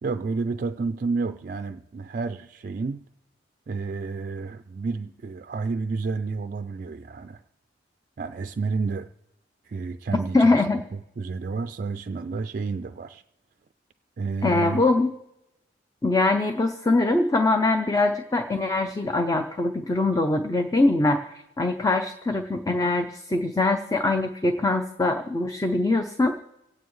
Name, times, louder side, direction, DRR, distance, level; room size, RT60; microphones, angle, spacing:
voice 1, 0.0-3.0 3.7-7.4 8.2-9.1 9.6-10.6 10.9-13.2 14.2-14.8, right 4 dB, 50° right, 9 dB, 0.3 m, -30 dB
voice 2, 10.3-10.8 14.4-15.1 16.0-26.3, left 2 dB, 20° left, 6 dB, 0.6 m, -23 dB
27.0 x 9.2 x 3.2 m, 0.91 s
head